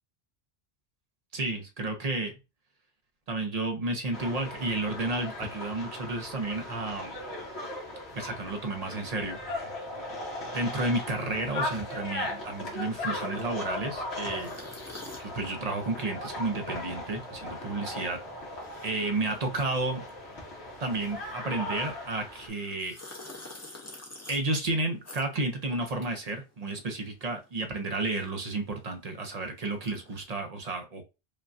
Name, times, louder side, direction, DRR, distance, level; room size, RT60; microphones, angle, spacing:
voice 1, 1.3-2.3 3.3-7.2 8.1-9.4 10.5-14.5 15.2-18.2 18.8-20.0 20.8-23.0 24.3-31.0, right 2 dB, 40° right, 4 dB, 0.7 m, -32 dB
sound 1, 4.1-22.5, left 1 dB, 75° left, 1.6 m, -38 dB
sound 2, 11.3-27.1 27.4-30.3, left 2 dB, 15° left, 0.7 m, -50 dB
5.0 x 2.2 x 2.6 m, 0.27 s
omnidirectional pair, 1.1 m